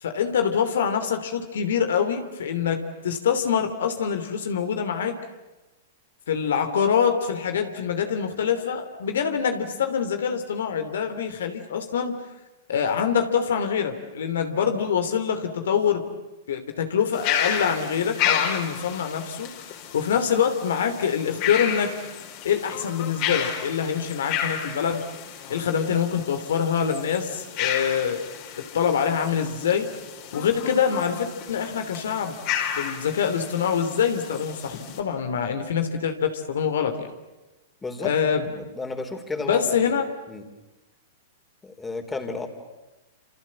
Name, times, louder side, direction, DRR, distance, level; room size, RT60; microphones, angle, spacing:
voice 1, 0.0-5.2 6.3-12.2 12.7-16.0 16.5-19.5 19.9-22.0 22.4-25.0 25.5-28.2 28.6-29.9 30.3-32.4 32.7-37.1 38.0-38.4 39.4-40.0, left 7 dB, 70° left, 7 dB, 2.9 m, -25 dB
sound 1, 17.1-35.0, left 9 dB, 45° left, 5.0 m, -32 dB
voice 2, 37.8-39.8 40.3-40.4 41.6-42.5, left 3 dB, 15° left, 6 dB, 3.9 m, -33 dB
28.5 x 28.0 x 7.5 m, 1.1 s
hypercardioid pair, 105°, 0 cm